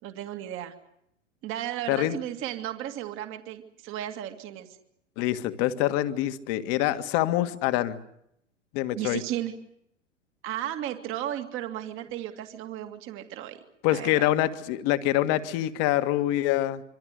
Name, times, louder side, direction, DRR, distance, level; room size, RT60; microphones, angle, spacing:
voice 1, 0.0-0.7 1.4-4.8 9.0-9.5 10.4-13.6 13.9-14.3, right 12 dB, 35° right, 6 dB, 2.2 m, -34 dB
voice 2, 5.2-8.0 8.7-9.2 13.8-16.8, left 14 dB, 40° left, 10 dB, 1.8 m, -25 dB
26.5 x 25.0 x 6.6 m, 0.77 s
figure-of-eight pair, 95°, 37 cm